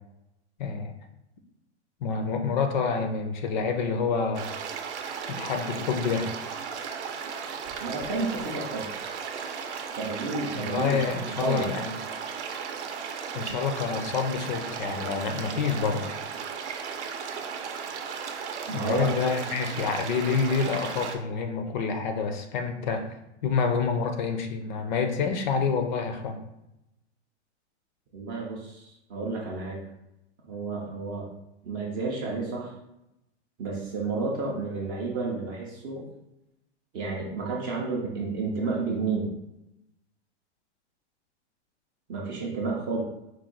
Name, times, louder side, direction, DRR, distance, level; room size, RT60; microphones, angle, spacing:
voice 1, 0.6-0.9 2.0-4.5 5.3-6.3 10.5-12.0 13.3-16.1 18.7-23.1 23.4-26.4, left 5 dB, 40° left, 6 dB, 0.5 m, -28 dB
sound 1, 4.3-21.2, right 6 dB, 70° right, 0.7 m, -35 dB
voice 2, 7.8-8.8 10.0-11.0 11.4-11.7 18.7-19.1 28.1-29.8 30.5-31.3 31.6-32.7 33.6-36.0 36.9-39.3 42.1-43.0, right 3 dB, 20° right, -3 dB, 0.4 m, -31 dB
4.6 x 2.2 x 3.8 m, 0.88 s
hypercardioid pair, 150°, 36 cm